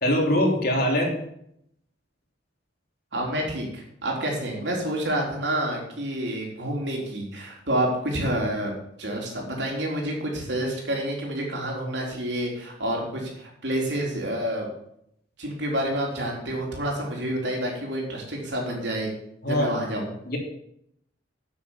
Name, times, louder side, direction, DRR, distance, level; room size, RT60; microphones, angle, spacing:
voice 1, 0.0-1.2 19.4-19.7 20.3-20.4, left 1 dB, 55° left, 1 dB, 3.1 m, -22 dB
voice 2, 3.1-8.7 9.0-14.7 15.4-19.1 19.5-20.1, right 1 dB, 70° right, -1 dB, 3.8 m, -28 dB
9.1 x 8.7 x 7.4 m, 0.74 s
head